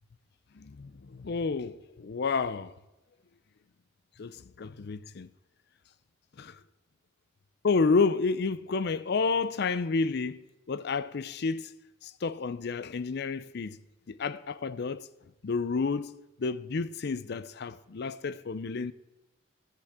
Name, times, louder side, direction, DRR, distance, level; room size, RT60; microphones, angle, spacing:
voice 1, 0.6-2.7 4.2-5.3 6.4-6.6 7.6-11.7 12.0-13.8 14.1-15.1 15.4-18.9, left 4 dB, 55° left, 0.5 m, -30 dB
15.5 x 10.5 x 3.6 m
head